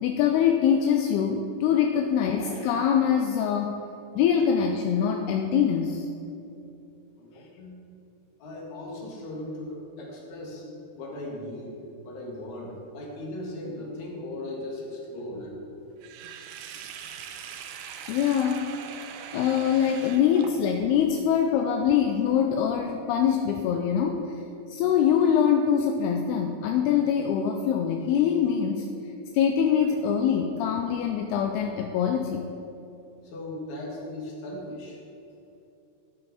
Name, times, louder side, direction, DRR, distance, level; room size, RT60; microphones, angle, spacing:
voice 1, 0.0-3.8 4.2-6.1 18.1-18.7 19.3-24.4 24.7-28.9 29.3-32.5, left 8 dB, 80° left, 3 dB, 2.5 m, -24 dB
voice 2, 7.2-7.8 8.4-15.5 33.2-35.0, left 1 dB, 50° left, -3 dB, 3.1 m, -38 dB
Sink (filling or washing), 16.0-20.9, right 8 dB, 75° right, 2.5 m, -41 dB
15.0 x 8.9 x 4.2 m, 2.7 s
omnidirectional pair, 4.7 m